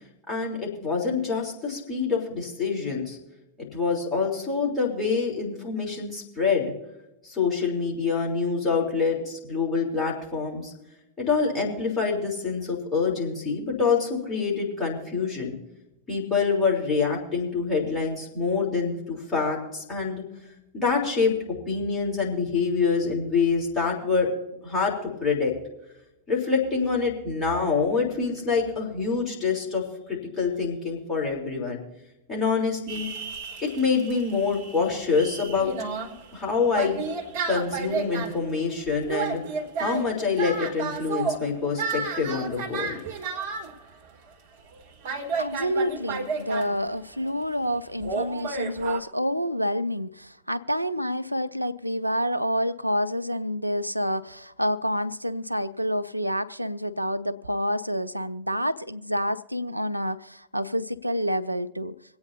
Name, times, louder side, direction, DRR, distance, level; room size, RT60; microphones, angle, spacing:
voice 1, 0.3-3.2 3.6-6.7 7.2-10.7 11.2-15.5 16.1-20.2 20.7-24.3 24.6-25.5 26.3-31.8 32.3-33.1 33.6-35.7 36.3-37.0 37.5-39.4 39.8-43.0, left 5 dB, 20° left, 3.7 m, -26 dB
sound 1, 32.9-43.8 44.3-44.4 44.7-44.8 45.0-47.3 48.0-49.0, right 5 dB, 50° right, 1.6 m, -32 dB
voice 2, 45.4-61.9, equal, 90° right, 0.4 m, -28 dB
25.5 x 8.7 x 2.8 m
figure-of-eight pair, 90°, 0 cm